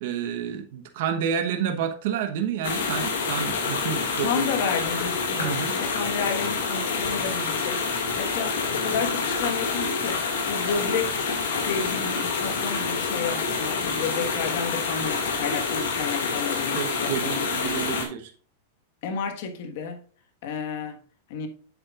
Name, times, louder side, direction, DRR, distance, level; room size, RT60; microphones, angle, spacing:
voice 1, 0.0-4.5 5.4-5.7 16.7-18.3, right 8 dB, 60° right, 1.0 m, -29 dB
sound 1, 2.6-18.1, left 4 dB, 80° left, 2.1 m, -27 dB
voice 2, 4.2-7.8 8.2-10.2 10.5-11.3 11.6-17.4 19.0-20.0 20.4-21.0 21.3-21.5, left 6 dB, 60° left, 1.4 m, -31 dB
7.8 x 7.2 x 2.4 m
supercardioid pair, 140°, 0 cm